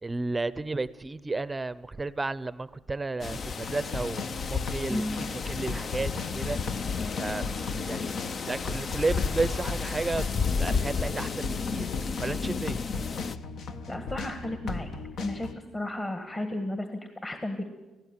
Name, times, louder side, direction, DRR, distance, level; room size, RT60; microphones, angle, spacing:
voice 1, 0.0-5.0 5.5-6.6 7.2-7.4 7.9-8.1 8.5-10.3 10.6-11.9 12.2-12.8, right 3 dB, 20° right, 18 dB, 0.6 m, -32 dB
sound 1, 3.2-13.4, left 5 dB, 45° left, 0.6 m, -32 dB
sound 2, 3.6-15.6, left 4 dB, 70° left, 1.2 m, -37 dB
voice 2, 4.9-5.2 13.9-14.9 15.2-17.7, left 1 dB, 25° left, 7 dB, 1.7 m, -33 dB
18.0 x 16.0 x 9.8 m, 1.2 s
cardioid pair, 90°, 0 cm